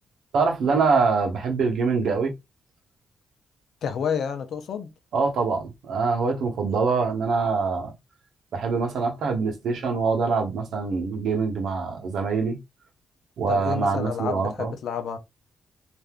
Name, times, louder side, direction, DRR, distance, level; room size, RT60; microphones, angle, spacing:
voice 1, 0.3-2.3 5.1-7.9 8.5-12.6 13.4-14.7, right 4 dB, 80° right, 0.9 m, -24 dB
voice 2, 3.8-4.9 13.5-15.2, left 7 dB, 75° left, 0.6 m, -30 dB
3.5 x 2.6 x 2.3 m
cardioid pair, 105°, 0 cm